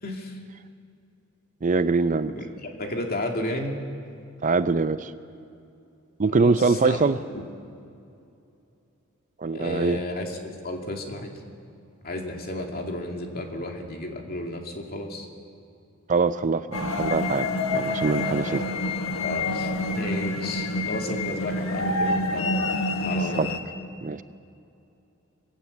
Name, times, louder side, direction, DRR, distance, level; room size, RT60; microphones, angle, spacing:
voice 1, 0.0-0.4 2.3-3.8 6.3-7.0 7.3-7.4 9.5-11.3 12.0-15.3 19.2-22.7 23.0-23.5, left 1 dB, 45° left, 2 dB, 2.4 m, -33 dB
voice 2, 1.6-2.3 4.4-5.1 6.2-7.2 9.4-10.0 16.1-18.7 23.2-23.5 24.0-24.2, right 4 dB, 40° right, 12 dB, 0.5 m, -23 dB
sound 1, 16.7-23.6, left 2 dB, 85° left, 1.5 m, -27 dB
22.0 x 16.5 x 8.3 m, 2.6 s
head